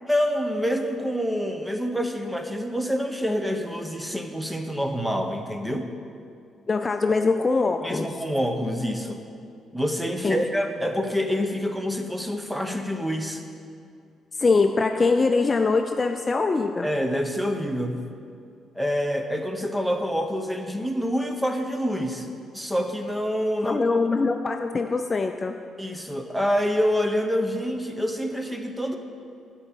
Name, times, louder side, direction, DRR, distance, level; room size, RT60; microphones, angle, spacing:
voice 1, 0.1-5.9 7.8-9.2 9.7-13.4 16.8-18.0 18.7-23.8 25.8-29.0, equal, 5° right, 5 dB, 0.8 m, -27 dB
voice 2, 6.7-8.1 10.2-10.4 14.4-16.9 23.6-25.5, left 4 dB, 30° left, 6 dB, 0.4 m, -23 dB
9.8 x 4.5 x 7.3 m, 2.4 s
cardioid pair, 90°, 0 cm